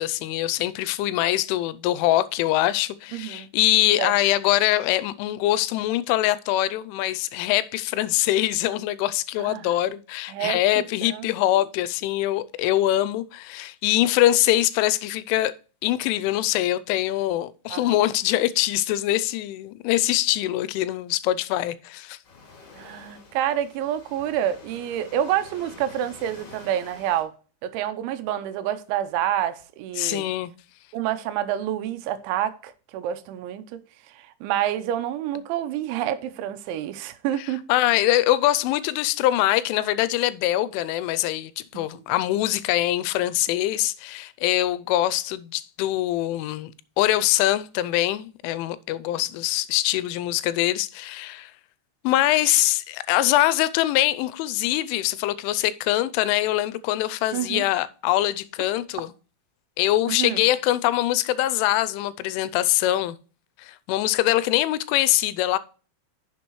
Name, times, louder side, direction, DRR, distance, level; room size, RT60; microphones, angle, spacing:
voice 1, 0.0-15.5 15.8-22.2 30.0-30.5 37.4-51.5 52.0-59.1 59.8-63.2 63.6-65.6, left 14 dB, 90° left, 3.1 m, -23 dB
voice 2, 3.1-3.5 4.0-4.1 9.4-9.7 10.3-11.3 11.5-11.6 17.7-18.0 22.8-27.3 27.6-30.3 30.9-33.6 34.2-37.6 57.3-57.6 60.1-60.4, right 11 dB, 80° right, 3.0 m, -28 dB
Waves surf, 22.2-27.2, left 4 dB, 45° left, 3.3 m, -47 dB
10.5 x 7.1 x 3.1 m
omnidirectional pair, 5.5 m